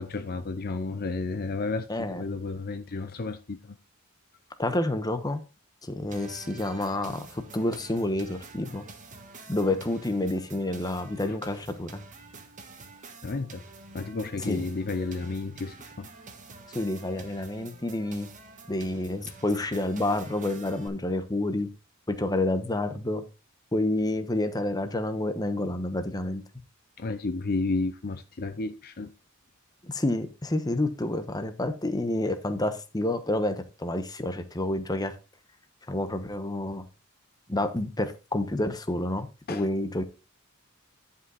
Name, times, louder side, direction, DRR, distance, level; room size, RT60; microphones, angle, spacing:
voice 1, 0.0-3.8 11.2-11.4 13.2-13.6 13.9-16.1 27.0-29.1 39.5-39.7, left 3 dB, 45° left, 0.6 m, -32 dB
voice 2, 1.9-2.2 4.6-5.4 5.8-8.8 9.5-12.0 14.5-14.6 16.7-18.3 18.7-21.7 22.1-23.2 23.7-26.4 29.8-35.1 35.9-36.8 37.5-40.0, left 1 dB, 20° left, 1.0 m, -29 dB
sound 1, 6.1-20.9, right 3 dB, 35° right, 1.5 m, -48 dB
10.5 x 5.6 x 4.0 m
head